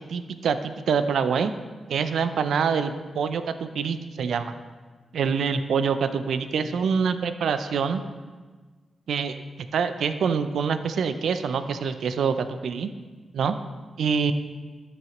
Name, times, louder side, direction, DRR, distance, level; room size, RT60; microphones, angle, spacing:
voice 1, 0.0-1.5 1.9-4.5 5.1-8.0 9.1-9.4 9.7-12.9 13.3-13.5 14.0-14.3, right 6 dB, 85° right, 10 dB, 0.4 m, -25 dB
13.0 x 6.0 x 3.1 m, 1.4 s
cardioid pair, 80°, 0 cm